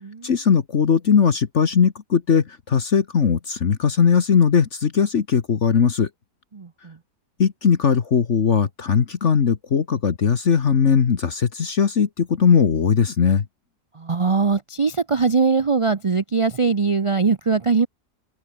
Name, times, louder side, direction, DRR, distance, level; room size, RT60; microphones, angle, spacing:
voice 1, 0.2-6.1 7.4-13.4, left 6 dB, 50° left, 1.5 m, -19 dB
voice 2, 6.5-7.0 14.0-17.9, right 4 dB, 40° right, 0.4 m, -21 dB
open air
omnidirectional pair, 1.7 m